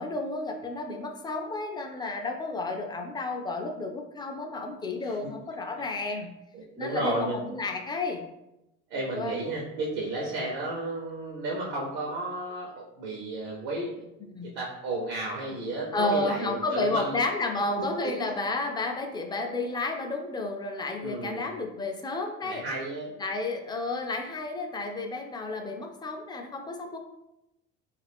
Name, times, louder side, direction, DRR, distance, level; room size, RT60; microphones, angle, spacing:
voice 1, 0.0-6.3 6.8-8.3 8.9-9.4 14.2-14.5 15.9-22.6 23.2-27.0, left 2 dB, 15° left, 3 dB, 0.3 m, -31 dB
voice 2, 6.5-7.4 8.9-17.2 17.8-17.9 19.4-19.5 21.0-21.5 22.4-23.1, right 2 dB, 80° right, -3 dB, 0.7 m, -33 dB
2.4 x 2.4 x 3.4 m, 0.89 s
cardioid pair, 110°, 29 cm